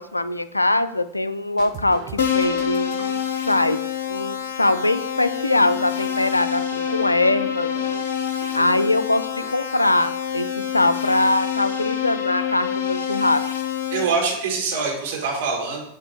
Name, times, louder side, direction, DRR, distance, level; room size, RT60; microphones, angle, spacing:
voice 1, 0.0-3.2 3.5-3.8 4.1-7.7 8.5-13.4, left 2 dB, 85° left, 13 dB, 0.3 m, -22 dB
sound 1, 1.6-3.1 5.7-8.9 9.2-9.5, right 6 dB, 40° right, 0.9 m, -41 dB
Keyboard (musical), 2.2-14.0, left 8 dB, 60° left, 0.8 m, -26 dB
voice 2, 13.9-15.8, right 4 dB, 55° right, -2 dB, 2.3 m, -24 dB
7.6 x 3.4 x 4.5 m, 0.75 s
figure-of-eight pair, 90°, 0 cm